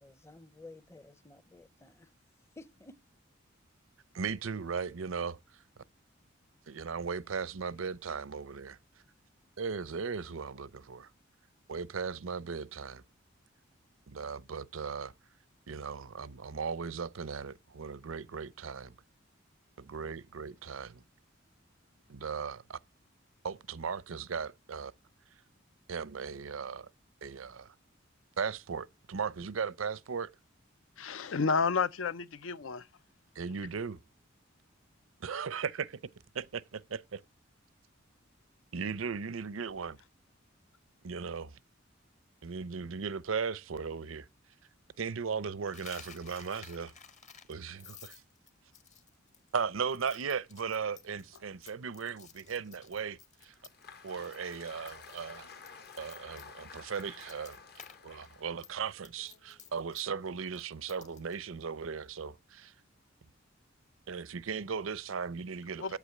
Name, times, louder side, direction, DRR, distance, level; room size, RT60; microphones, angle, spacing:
voice 1, 0.0-2.1 2.6-3.0, left 2 dB, 15° left, 0.6 m, -53 dB
voice 2, 4.1-5.6 6.7-8.8 9.6-11.1 11.7-13.0 14.1-15.1 15.7-18.9 19.8-21.0 22.1-22.8 23.4-24.9 25.9-26.9 27.2-27.7 28.4-30.3 33.4-34.0 35.2-36.0 36.3-37.2 38.7-40.0 41.0-41.6 42.4-44.3 45.0-46.9 47.5-48.2 49.5-53.5 54.0-55.5 56.0-57.6 58.0-62.7 64.1-66.0, right 6 dB, 90° right, 0.6 m, -37 dB
voice 3, 31.0-32.9 65.8-66.0, left 5 dB, 80° left, 0.6 m, -31 dB
Coin (dropping), 45.7-54.0 54.2-54.6 54.9-58.0 58.2-61.4, left 7 dB, 40° left, 1.1 m, -54 dB
Applause, 53.4-59.7, left 5 dB, 55° left, 1.0 m, -52 dB
8.8 x 8.4 x 7.7 m
head